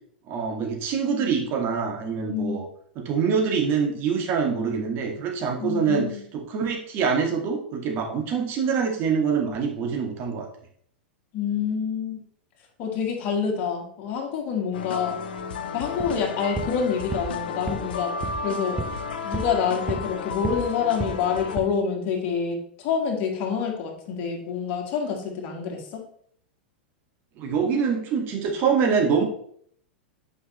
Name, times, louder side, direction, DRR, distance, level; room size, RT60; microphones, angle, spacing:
voice 1, 0.3-2.7 3.0-10.5 27.4-29.2, right 6 dB, 40° right, 1 dB, 1.7 m, -25 dB
voice 2, 2.3-2.6 5.6-6.2 11.3-12.2 12.8-15.2 15.7-18.8 19.2-26.0, left 6 dB, 40° left, 1 dB, 1.9 m, -27 dB
sound 1, 14.7-21.6, left 5 dB, 65° left, 0.7 m, -33 dB
sound 2, 15.9-16.2 16.5-16.8 17.1-17.4 17.7-17.9 18.2-18.5 18.8-19.0 19.3-20.2 20.4-20.7 21.0-21.3 21.5-21.7, right 4 dB, 10° right, 0.7 m, -32 dB
8.4 x 5.2 x 3.2 m, 0.63 s
figure-of-eight pair, 95°, 6 cm